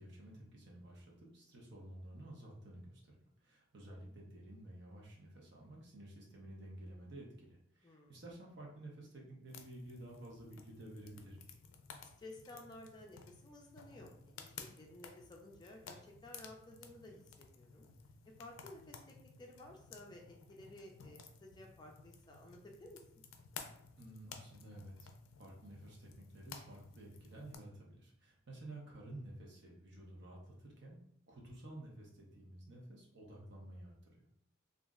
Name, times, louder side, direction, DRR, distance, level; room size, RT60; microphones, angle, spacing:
voice 1, 0.0-3.1 3.4-11.4 24.0-25.1 25.4-31.0 31.3-34.3, right 1 dB, 60° right, -2 dB, 0.7 m, -52 dB
voice 2, 7.8-8.2 12.2-17.9 18.4-23.0, left 1 dB, 20° left, 0 dB, 0.4 m, -55 dB
sound 1, 9.5-27.6, left 6 dB, 85° left, 0.4 m, -55 dB
2.4 x 2.0 x 3.6 m, 0.73 s
head